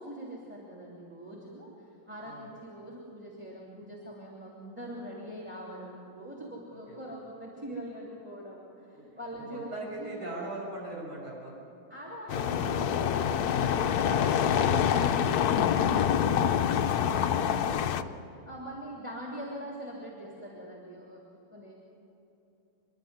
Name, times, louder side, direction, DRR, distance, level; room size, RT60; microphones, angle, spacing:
voice 1, 0.0-10.3 11.9-18.1 18.4-21.2 21.5-21.7, right 1 dB, 5° right, -3 dB, 2.8 m, -42 dB
voice 2, 9.5-11.7 14.3-14.8 16.8-18.1, right 2 dB, 85° right, -4 dB, 7.7 m, -42 dB
sound 1, 12.3-18.0, left 9 dB, 65° left, 1.0 m, -26 dB
27.0 x 11.5 x 9.5 m, 2.8 s
omnidirectional pair, 2.3 m